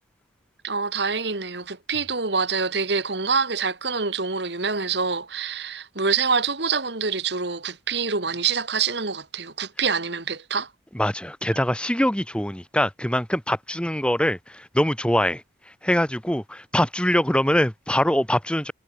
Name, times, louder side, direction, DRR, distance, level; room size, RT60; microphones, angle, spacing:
voice 1, 0.6-10.7, right 5 dB, 65° right, 2.1 m, -26 dB
voice 2, 10.9-15.4 15.8-18.7, equal, 5° left, 2.7 m, -23 dB
head